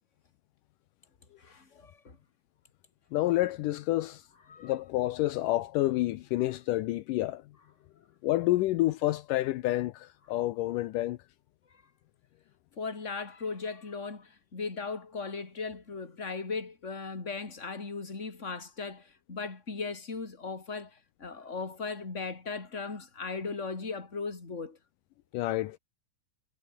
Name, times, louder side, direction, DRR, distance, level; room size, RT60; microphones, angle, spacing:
voice 1, 1.4-2.2 4.5-4.7 12.8-24.8, left 4 dB, 20° left, 3.4 m, -37 dB
voice 2, 3.1-4.2 4.6-7.4 8.2-11.2 25.3-25.8, left 16 dB, 80° left, 2.3 m, -29 dB
omnidirectional pair, 3.9 m